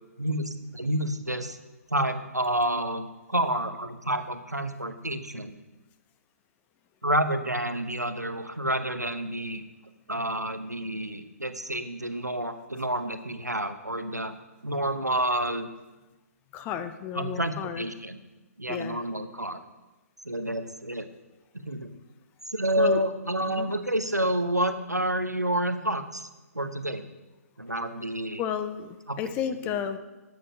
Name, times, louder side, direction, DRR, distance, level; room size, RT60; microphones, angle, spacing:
voice 1, 0.2-1.6 1.9-5.5 7.0-9.6 10.1-14.3 14.6-15.7 17.1-18.2 18.6-19.6 20.2-21.1 21.5-21.9 22.5-26.3 26.5-27.0 27.6-28.4 29.1-29.2 29.6-29.8, right 1 dB, 90° right, 9 dB, 0.9 m, -29 dB
voice 2, 16.5-17.8 18.7-19.0 22.8-23.0 23.5-23.7 28.4-30.0, left 8 dB, 15° left, 9 dB, 0.5 m, -32 dB
8.7 x 7.9 x 5.5 m, 1.1 s
figure-of-eight pair, 130°, 9 cm